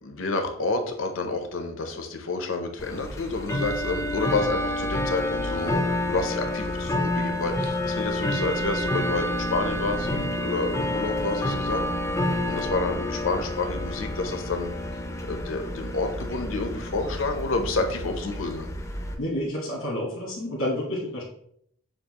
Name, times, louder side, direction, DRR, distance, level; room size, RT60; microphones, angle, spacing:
voice 1, 0.0-5.8 6.1-12.1 12.4-14.7 15.3-18.7, left 3 dB, 70° left, 6 dB, 0.6 m, -29 dB
Bell / Tick-tock, 2.8-19.1, left 1 dB, 15° left, 0.4 m, -29 dB
voice 2, 19.2-21.2, left 1 dB, 90° left, -6 dB, 1.4 m, -29 dB
6.7 x 2.4 x 2.9 m, 0.69 s
head